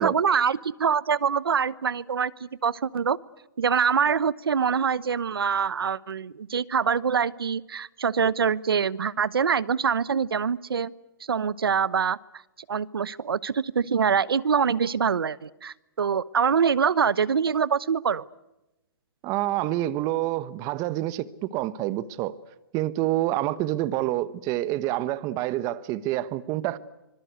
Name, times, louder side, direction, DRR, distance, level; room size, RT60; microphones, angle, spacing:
voice 1, 0.0-3.2 3.6-10.9 11.3-12.2 12.7-18.2, right 6 dB, 90° right, 1.0 m, -24 dB
voice 2, 19.2-22.4 22.7-26.8, right 15 dB, 30° right, 1.2 m, -27 dB
25.5 x 23.0 x 8.2 m
hypercardioid pair, 145°, 12 cm